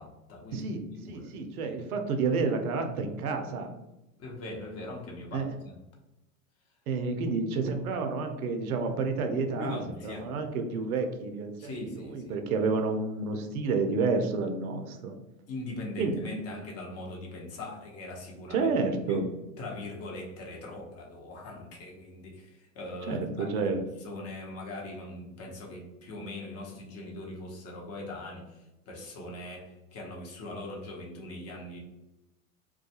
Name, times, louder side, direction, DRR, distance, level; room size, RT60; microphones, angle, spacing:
voice 1, 0.0-1.7 4.2-5.8 9.6-10.3 11.6-12.3 15.5-18.7 19.1-19.3 19.6-31.8, left 2 dB, 35° left, -1 dB, 0.8 m, -41 dB
voice 2, 0.5-3.7 5.3-5.6 6.9-15.2 16.0-16.1 18.5-19.3 23.0-23.8, right 4 dB, 80° right, 5 dB, 0.6 m, -30 dB
2.3 x 2.2 x 2.8 m, 0.98 s
hypercardioid pair, 95°, 43 cm